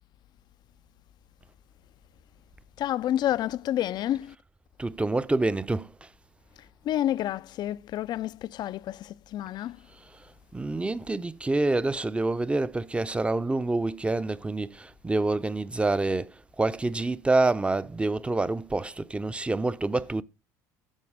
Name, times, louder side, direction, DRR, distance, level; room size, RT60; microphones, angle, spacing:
voice 1, 2.8-4.3 6.8-9.8, left 12 dB, 50° left, 0.4 m, -29 dB
voice 2, 4.8-6.1 9.9-20.2, right 2 dB, 10° right, 0.6 m, -27 dB
13.0 x 4.6 x 4.9 m
supercardioid pair, 80°, 9 cm